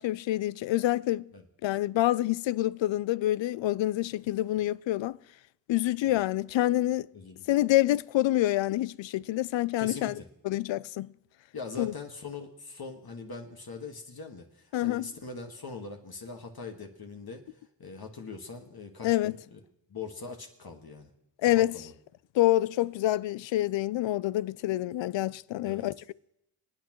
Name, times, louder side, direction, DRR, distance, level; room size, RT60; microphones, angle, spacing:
voice 1, 0.0-1.3 1.6-5.2 5.7-7.1 7.5-10.1 10.4-11.1 11.8-11.9 14.7-15.1 19.0-19.3 21.4-21.8 22.3-26.1, left 15 dB, 65° left, 0.5 m, -27 dB
voice 2, 7.1-7.5 9.8-10.3 11.5-17.4 17.8-19.6 19.9-21.1 21.5-21.9 25.6-25.9, left 4 dB, 50° left, 1.7 m, -42 dB
26.5 x 8.9 x 3.1 m
cardioid pair, 55°, 48 cm